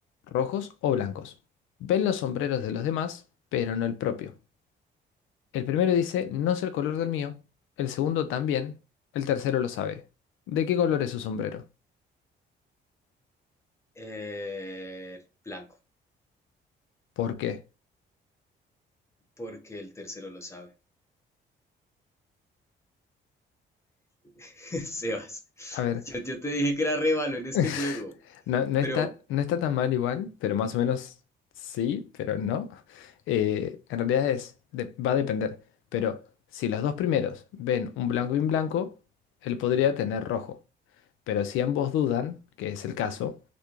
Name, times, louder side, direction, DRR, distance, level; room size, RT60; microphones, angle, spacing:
voice 1, 0.3-1.3 1.8-3.2 3.5-4.3 5.5-7.4 7.8-8.7 9.1-10.0 10.5-11.6 17.2-17.6 25.7-26.0 27.5-28.0 28.5-31.1 31.6-35.6 35.9-36.2 36.5-38.9 39.4-40.6 41.3-43.4, left 9 dB, 90° left, 0.4 m, -28 dB
voice 2, 14.0-15.7 19.4-20.7 24.4-28.1 28.8-29.1, equal, 15° left, 0.9 m, -32 dB
3.3 x 2.6 x 2.9 m
cardioid pair, 90°, 20 cm